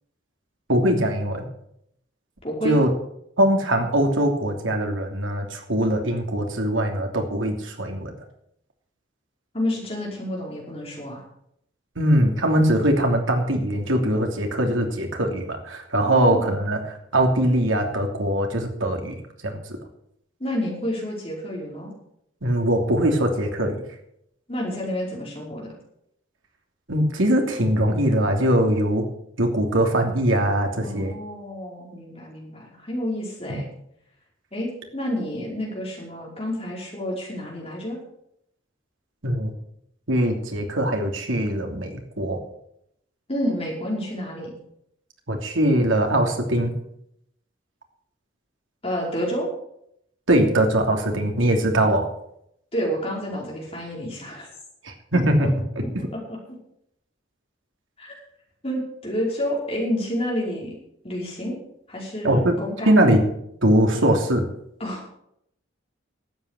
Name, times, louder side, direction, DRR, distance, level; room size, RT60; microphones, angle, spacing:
voice 1, 0.7-1.5 2.6-2.9 3.4-8.1 12.0-16.8 17.1-19.6 22.4-23.8 26.9-29.0 29.4-31.1 33.5-33.6 39.2-39.5 40.1-42.4 45.3-46.7 50.3-52.1 54.8-55.5 62.2-62.5 62.9-63.2 63.6-64.4, right 1 dB, 80° right, 3 dB, 2.9 m, -21 dB
voice 2, 2.4-2.8 9.5-11.2 16.1-16.6 20.4-21.9 24.5-25.7 30.8-33.7 34.5-38.0 43.3-44.5 48.8-49.5 52.7-54.5 56.1-56.4 58.0-58.1 58.6-60.8 61.0-61.5 61.9-63.0 64.8-65.1, equal, 30° left, -2 dB, 5.1 m, -29 dB
12.5 x 8.4 x 8.3 m, 0.75 s
head